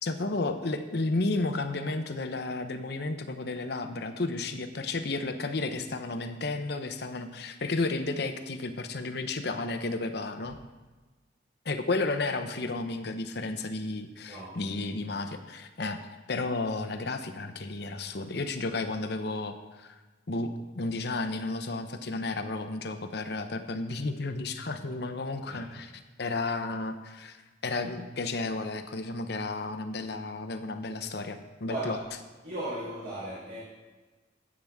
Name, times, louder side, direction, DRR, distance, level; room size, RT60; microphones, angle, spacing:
voice 1, 0.0-10.6 11.6-16.0 16.3-19.9 20.3-25.9 26.2-27.4 27.6-32.0, left 3 dB, 60° left, 8 dB, 0.8 m, -32 dB
voice 2, 14.3-14.6 25.4-25.7 31.7-32.0 32.4-33.6, right 1 dB, 60° right, -10 dB, 4.0 m, -36 dB
14.5 x 8.6 x 3.6 m, 1.3 s
head